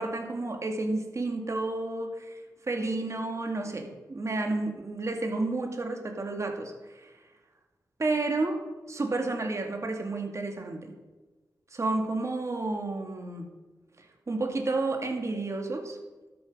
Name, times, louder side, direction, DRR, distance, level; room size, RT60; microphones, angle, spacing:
voice 1, 0.0-2.4 2.7-7.1 8.0-8.6 8.9-11.0 11.7-13.5 14.0-16.0, right 2 dB, 45° right, 3 dB, 2.3 m, -31 dB
12.5 x 10.0 x 5.1 m, 1.2 s
cardioid pair, 70°, 7 cm